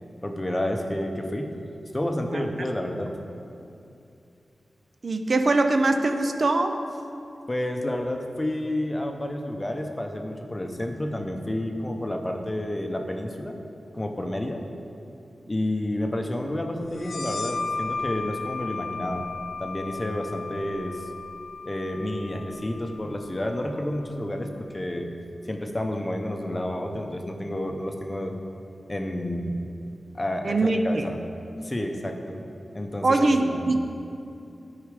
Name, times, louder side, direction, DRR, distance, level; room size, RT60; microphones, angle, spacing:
voice 1, 0.2-1.6 1.9-3.1 7.5-13.5 13.9-14.6 15.5-19.3 19.6-21.1 21.7-25.1 25.5-28.4 28.9-29.7 30.1-31.2 31.6-32.4 32.7-33.2 33.4-33.7, left 1 dB, 20° left, 3 dB, 0.7 m, -30 dB
voice 2, 5.0-6.8 30.4-31.0 33.0-33.8, right 2 dB, 50° right, 6 dB, 0.5 m, -22 dB
sound 1, 17.0-24.3, left 4 dB, 60° left, 0.6 m, -35 dB
13.0 x 4.8 x 4.8 m, 2.6 s
wide cardioid pair, 115°, 0 cm